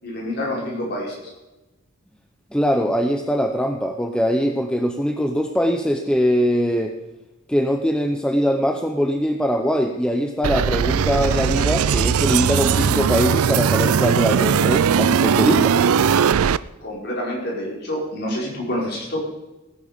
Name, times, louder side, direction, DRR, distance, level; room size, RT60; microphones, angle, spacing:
voice 1, 0.0-1.3 16.8-19.2, left 1 dB, 50° left, -3 dB, 5.3 m, -27 dB
voice 2, 2.5-6.9 7.5-15.8, equal, 5° left, 4 dB, 0.7 m, -22 dB
sound 1, 10.4-16.6, right 7 dB, 90° right, 0.4 m, -19 dB
17.5 x 10.0 x 5.2 m, 1.1 s
head